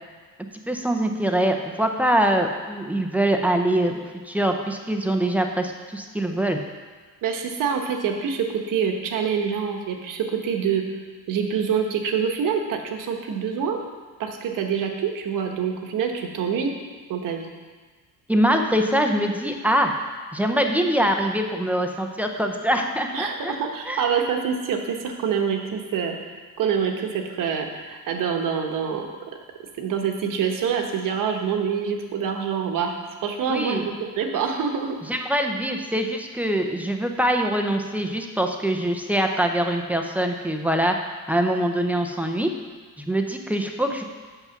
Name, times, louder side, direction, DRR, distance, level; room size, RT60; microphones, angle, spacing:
voice 1, 0.7-6.6 18.3-19.9 20.3-23.5 23.9-24.0 33.5-33.8 35.1-40.9 41.3-42.5 43.0-44.0, right 1 dB, 5° right, 3 dB, 0.6 m, -23 dB
voice 2, 7.2-10.8 11.3-13.8 14.2-16.7 17.1-17.5 23.1-26.2 26.6-29.1 29.8-35.0, right 7 dB, 60° right, 3 dB, 1.3 m, -26 dB
8.2 x 7.1 x 5.9 m, 1.5 s
cardioid pair, 160°, 36 cm